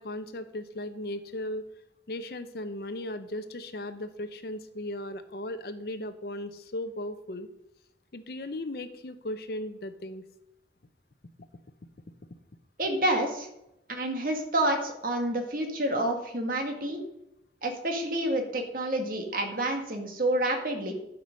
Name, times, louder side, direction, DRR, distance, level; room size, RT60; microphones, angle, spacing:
voice 1, 0.0-1.6 2.1-7.5 8.1-10.2, left 1 dB, 55° left, 10 dB, 0.7 m, -37 dB
voice 2, 12.8-13.5 13.9-17.0 17.6-20.9, right 1 dB, 50° right, 3 dB, 1.9 m, -28 dB
11.5 x 6.0 x 5.2 m, 0.83 s
head